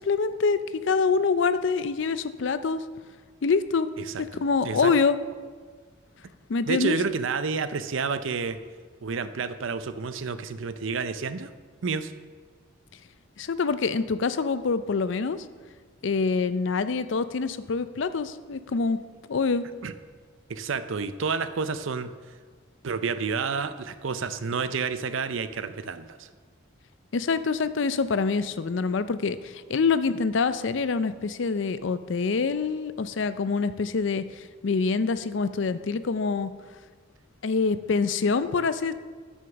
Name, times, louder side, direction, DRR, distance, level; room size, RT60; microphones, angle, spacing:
voice 1, 0.0-2.8 3.4-3.9 4.2-5.2 6.5-7.0 13.4-15.4 16.0-19.0 19.3-19.7 27.1-36.5 37.4-38.9, left 4 dB, 65° left, 13 dB, 0.5 m, -25 dB
voice 2, 4.1-4.9 6.7-8.6 9.0-11.5 11.8-12.1 19.8-19.9 20.5-22.1 22.8-26.3, right 5 dB, 70° right, 12 dB, 0.5 m, -30 dB
9.3 x 6.3 x 5.8 m, 1.6 s
head